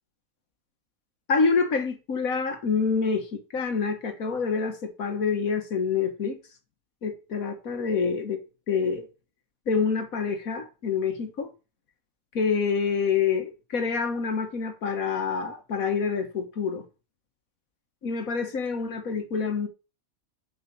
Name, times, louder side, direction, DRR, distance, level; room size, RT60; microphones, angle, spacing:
voice 1, 1.3-6.4 7.0-9.1 9.7-11.5 12.3-16.9 18.0-19.7, left 5 dB, 75° left, 1.8 m, -27 dB
7.7 x 5.6 x 6.8 m
omnidirectional pair, 1.5 m